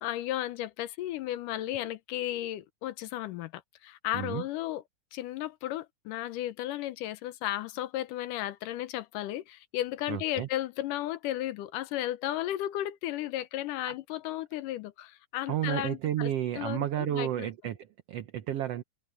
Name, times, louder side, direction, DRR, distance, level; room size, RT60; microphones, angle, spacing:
voice 1, 0.0-4.8 5.1-16.3 16.6-17.5, left 14 dB, 90° left, 2.5 m, -34 dB
voice 2, 10.1-10.5 15.5-18.8, right 11 dB, 70° right, 1.6 m, -32 dB
omnidirectional pair, 3.7 m